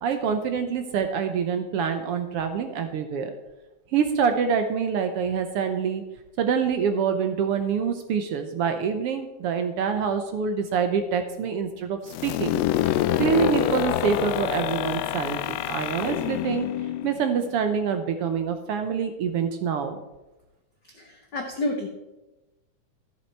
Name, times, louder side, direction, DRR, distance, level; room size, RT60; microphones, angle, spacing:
voice 1, 0.0-3.3 3.9-6.0 6.4-16.7 17.0-20.0, right 6 dB, 70° right, 7 dB, 1.4 m, -26 dB
sound 1, 12.1-17.8, left 12 dB, 80° left, 1.5 m, -27 dB
voice 2, 20.9-21.9, left 1 dB, 65° left, 2 dB, 1.1 m, -30 dB
13.5 x 8.1 x 4.5 m, 1.0 s
omnidirectional pair, 3.5 m